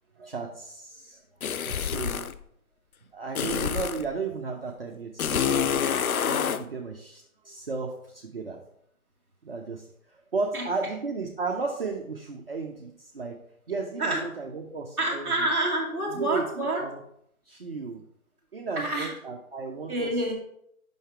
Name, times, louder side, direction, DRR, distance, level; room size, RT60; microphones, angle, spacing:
voice 1, 0.2-1.2 1.7-2.3 3.1-5.8 6.2-8.6 9.4-13.4 13.7-15.5 16.1-16.4 16.7-17.0 17.5-18.0 18.5-20.1, right 4 dB, 45° right, 0 dB, 0.6 m, -34 dB
sound 1, 1.4-2.4 3.3-4.1 5.2-6.6, left 8 dB, 75° left, 0.6 m, -27 dB
voice 2, 15.0-16.9 18.7-19.1 19.9-20.3, right 1 dB, 5° right, -12 dB, 1.3 m, -27 dB
5.6 x 5.5 x 4.4 m, 0.72 s
figure-of-eight pair, 160°, 43 cm